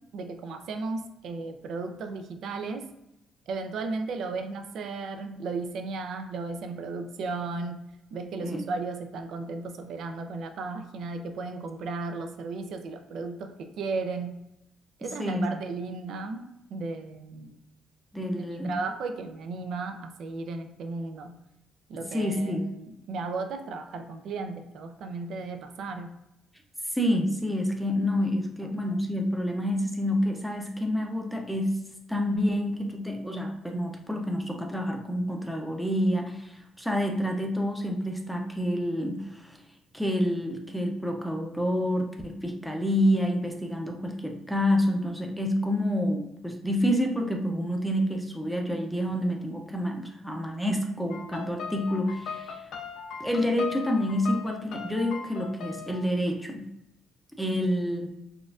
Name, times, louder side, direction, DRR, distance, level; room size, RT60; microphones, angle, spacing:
voice 1, 0.1-2.9 3.5-7.8 8.1-14.3 15.0-17.6 18.4-21.4 21.9-26.1 28.6-28.7, right 3 dB, 70° right, 7 dB, 0.4 m, -35 dB
voice 2, 18.1-18.7 21.9-22.7 26.9-31.8 32.1-39.6 39.9-52.6 53.2-56.7 57.4-58.1, equal, ahead, 1 dB, 0.5 m, -28 dB
sound 1, 51.1-56.1, left 6 dB, 80° left, 0.4 m, -39 dB
4.2 x 2.4 x 2.4 m, 0.86 s
cardioid pair, 120°, 0 cm